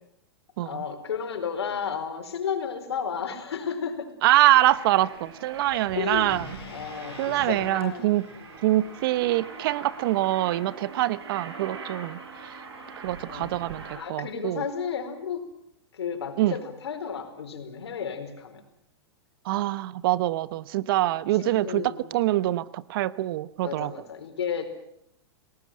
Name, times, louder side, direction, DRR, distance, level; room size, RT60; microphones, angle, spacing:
voice 1, 0.6-4.1 5.7-6.4 6.7-8.7 13.2-13.6 14.0-15.5 15.9-18.6 21.3-22.1 23.6-24.7, left 7 dB, 80° left, 7 dB, 4.6 m, -33 dB
voice 2, 4.2-6.5 7.2-8.3 8.6-12.6 13.0-14.6 16.4-16.5 19.4-23.9, right 15 dB, 60° right, 17 dB, 1.0 m, -24 dB
Aircraft, 4.7-14.0, right 4 dB, 80° right, 6.0 m, -42 dB
sound 1, 6.3-10.5, left 9 dB, 65° left, 4.2 m, -48 dB
29.5 x 19.0 x 7.6 m, 0.74 s
hypercardioid pair, 115°, 14 cm